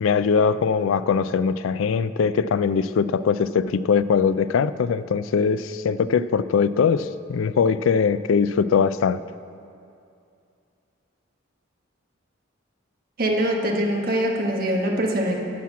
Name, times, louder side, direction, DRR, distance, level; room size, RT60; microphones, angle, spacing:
voice 1, 0.0-9.2, left 6 dB, 85° left, 15 dB, 0.4 m, -21 dB
voice 2, 13.2-15.4, right 1 dB, 50° right, 1 dB, 1.3 m, -23 dB
10.5 x 5.9 x 8.4 m, 2.5 s
head